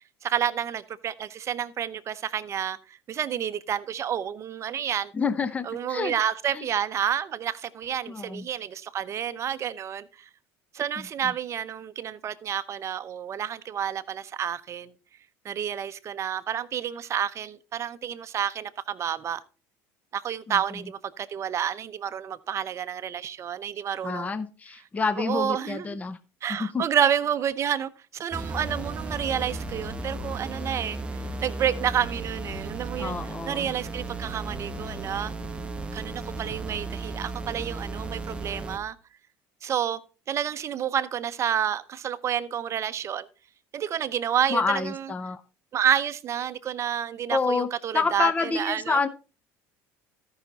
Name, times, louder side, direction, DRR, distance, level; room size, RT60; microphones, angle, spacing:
voice 1, 0.2-5.1 5.7-10.3 10.7-14.9 15.4-19.4 20.1-24.3 25.2-25.9 26.4-33.2 33.5-35.3 35.9-39.0 39.6-40.0 40.3-43.3 43.7-45.1 45.7-49.0, right 9 dB, 40° right, 0.7 m, -29 dB
voice 2, 5.1-6.1 6.5-6.7 8.1-8.5 11.0-11.3 20.5-20.6 24.0-26.2 26.5-26.8 33.0-33.7 44.5-45.4 47.3-47.7 47.9-49.1, left 4 dB, 20° left, 0.7 m, -28 dB
sound 1, 28.3-38.8, right 2 dB, 15° right, 1.1 m, -35 dB
13.0 x 5.8 x 4.0 m
supercardioid pair, 110°, 7 cm